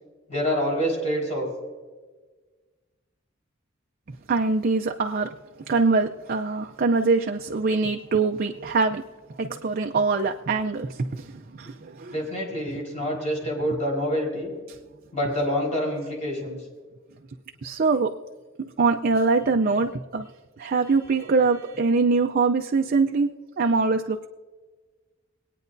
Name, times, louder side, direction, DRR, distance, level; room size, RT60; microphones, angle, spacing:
voice 1, 0.3-1.5 12.1-14.5 15.1-16.6, equal, 35° left, -2 dB, 4.4 m, -26 dB
voice 2, 4.3-5.3 5.7-9.0 9.4-12.2 12.7-12.8 14.7-14.8 17.6-18.1 18.8-20.3 20.6-23.3 23.6-24.3, right 4 dB, 45° right, 4 dB, 0.5 m, -23 dB
23.5 x 9.2 x 2.6 m, 1.3 s
head